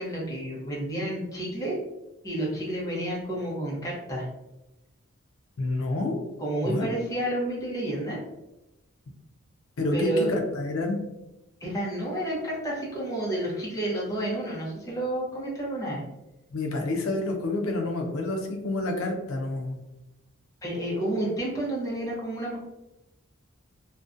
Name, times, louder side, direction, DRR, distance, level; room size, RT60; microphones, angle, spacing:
voice 1, 0.0-1.8 2.2-4.3 6.4-8.2 9.9-10.3 11.6-16.0 20.6-22.6, right 1 dB, 15° left, -5 dB, 0.7 m, -30 dB
voice 2, 5.6-6.2 6.6-6.9 9.8-11.0 16.5-19.8, left 2 dB, 80° left, 1 dB, 0.5 m, -28 dB
2.5 x 2.2 x 2.5 m, 0.95 s
head